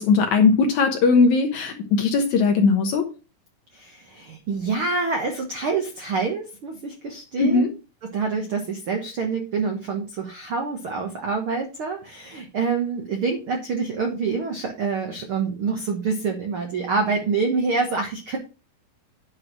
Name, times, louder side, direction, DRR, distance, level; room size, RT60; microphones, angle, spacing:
voice 1, 0.0-3.0 7.4-7.7, left 4 dB, 70° left, 4 dB, 1.9 m, -19 dB
voice 2, 3.7-7.6 8.0-18.4, right 4 dB, 80° right, 3 dB, 1.2 m, -26 dB
9.6 x 4.6 x 6.1 m, 0.32 s
omnidirectional pair, 4.4 m